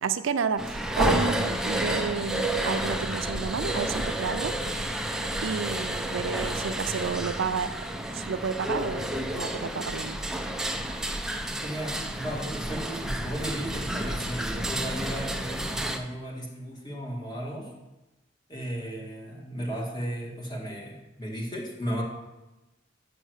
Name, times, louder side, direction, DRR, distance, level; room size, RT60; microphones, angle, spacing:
voice 1, 0.0-4.5 4.8-5.1 5.4-10.2, right 5 dB, 85° right, 11 dB, 0.5 m, -31 dB
sound 1, 0.6-16.0, right 1 dB, 5° right, 0.6 m, -30 dB
voice 2, 11.6-17.7 18.5-22.0, equal, 20° left, -2 dB, 1.9 m, -35 dB
7.8 x 6.4 x 6.3 m, 1.0 s
head